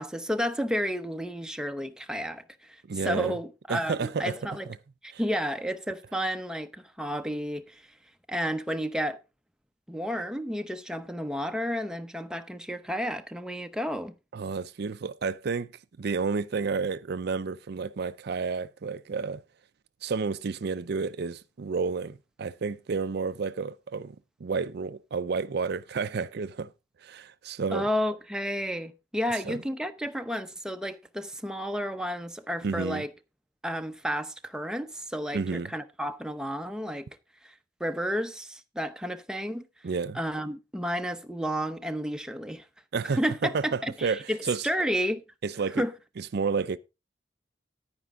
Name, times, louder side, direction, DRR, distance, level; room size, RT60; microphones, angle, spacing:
voice 1, 0.0-4.7 5.0-7.8 8.3-9.2 9.9-14.1 27.7-33.1 33.6-37.1 37.4-37.5 37.8-39.7 40.1-42.6 43.0-45.2 45.8-45.9, equal, 5° right, 0.7 m, -31 dB
voice 2, 2.9-3.3 3.7-4.3 14.3-15.7 16.0-19.4 20.0-24.2 24.4-26.7 27.0-27.9 29.5-29.6 32.6-33.0 35.3-35.7 39.8-40.2 42.9-43.2 43.5-44.7 45.4-45.8 46.2-46.8, right 5 dB, 60° right, 0.5 m, -31 dB
10.5 x 9.4 x 3.6 m
head